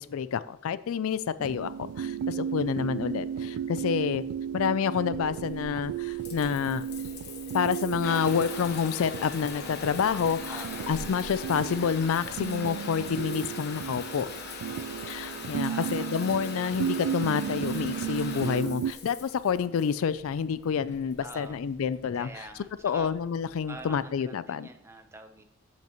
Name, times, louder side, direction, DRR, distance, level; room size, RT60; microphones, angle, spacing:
voice 1, 0.0-4.2 4.5-6.8 7.5-14.3 15.1-22.3 22.8-24.7, left 7 dB, 70° left, 15 dB, 0.3 m, -28 dB
sound 1, 1.4-18.9, right 8 dB, 85° right, 0.3 m, -35 dB
Water tap faucet / Bathtub (filling or washing) / Trickle dribble, 5.1-24.0, left 4 dB, 45° left, 1.0 m, -41 dB
voice 2, 10.5-10.9 15.7-16.1 21.2-21.6 22.1-23.1 23.7-25.4, right 2 dB, 10° right, 6 dB, 0.7 m, -45 dB
13.5 x 6.0 x 2.9 m, 0.74 s
head